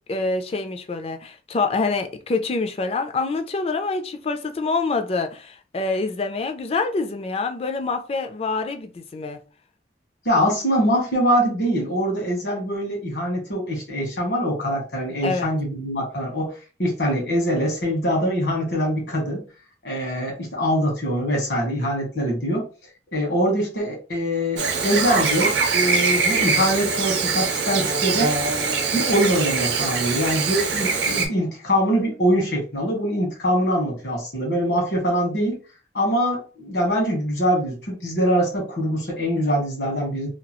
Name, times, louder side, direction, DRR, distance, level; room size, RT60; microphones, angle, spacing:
voice 1, 0.1-9.4 15.2-15.5, left 3 dB, 35° left, 0.3 m, -26 dB
voice 2, 10.2-16.5 16.8-19.4 19.8-22.7 23.1-28.3 28.9-35.6 35.9-40.3, equal, 70° left, 1.3 m, -23 dB
Chirp tweet / Buzz, 24.6-31.3, right 4 dB, 70° right, 0.6 m, -23 dB
2.9 x 2.3 x 2.9 m
head